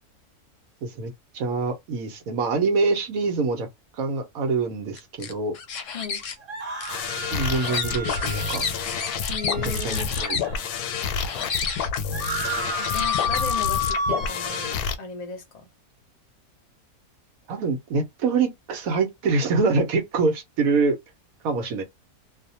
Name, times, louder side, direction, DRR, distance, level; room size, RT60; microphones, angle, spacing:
voice 1, 0.8-3.7 4.0-5.5 7.3-8.6 9.8-10.4 17.5-21.0 21.4-21.8, right 4 dB, 70° right, 1.1 m, -25 dB
sound 1, 5.0-6.4 6.8-10.5 10.9-12.0 12.7-13.8, left 5 dB, 70° left, 0.8 m, -32 dB
sound 2, 6.4-10.9 11.4-11.5 11.7-14.7, left 2 dB, 25° right, 1.4 m, -31 dB
sound 3, 6.9-15.0, left 6 dB, 85° left, 1.1 m, -29 dB
voice 2, 9.3-10.1 12.9-15.7, left 5 dB, 40° left, 0.6 m, -35 dB
2.8 x 2.1 x 2.7 m
omnidirectional pair, 1.6 m